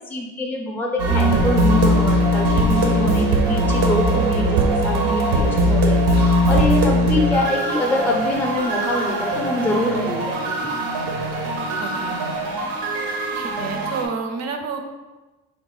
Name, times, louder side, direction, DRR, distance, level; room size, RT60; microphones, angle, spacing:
voice 1, 0.0-10.7, left 1 dB, 5° left, 0 dB, 0.5 m, -25 dB
sound 1, 1.0-14.0, equal, 85° right, 0.7 m, -20 dB
voice 2, 11.8-12.2 13.3-14.9, right 5 dB, 45° right, 5 dB, 0.5 m, -30 dB
3.7 x 2.2 x 3.8 m, 1.2 s
cardioid pair, 115°, 38 cm